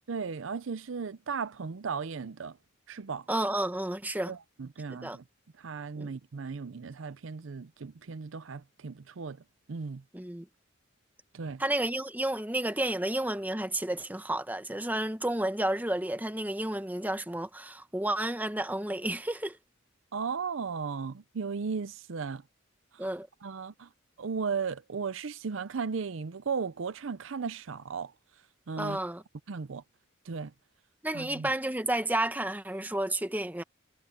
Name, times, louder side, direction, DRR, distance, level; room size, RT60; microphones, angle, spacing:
voice 1, 0.1-2.6 2.9-3.3 4.3-5.2 5.6-9.4 9.7-10.0 11.3-11.6 20.1-22.4 22.9-23.1 23.4-23.9 24.2-28.1 28.7-29.0 29.5-29.8 30.3-30.5 31.1-31.5, right 5 dB, 75° right, 0.6 m, -36 dB
voice 2, 3.3-4.3 4.9-5.2 6.0-6.1 10.1-10.4 11.6-19.6 23.0-23.3 28.8-29.2 31.0-33.6, right 1 dB, 10° right, 1.1 m, -31 dB
head